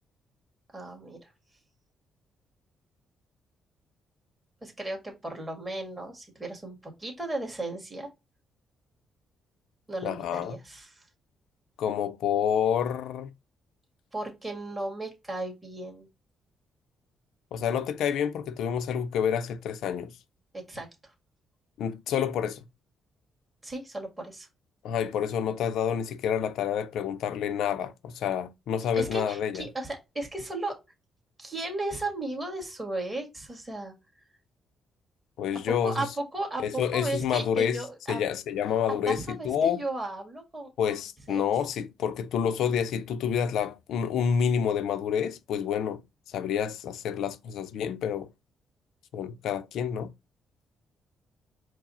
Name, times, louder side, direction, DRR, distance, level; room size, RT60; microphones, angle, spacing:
voice 1, 0.7-1.3 4.6-8.1 9.9-11.0 14.1-16.1 20.5-21.1 23.6-24.5 28.9-30.8 31.4-33.9 35.5-38.2 39.1-40.7 41.3-41.4, right 2 dB, 15° right, 1.7 m, -35 dB
voice 2, 10.0-10.6 11.8-13.3 17.5-20.1 21.8-22.6 24.8-29.7 35.4-36.1 36.6-37.8 38.1-39.8 40.8-48.3 49.1-50.1, left 8 dB, 80° left, 0.4 m, -28 dB
4.7 x 2.0 x 4.0 m
cardioid pair, 90°, 0 cm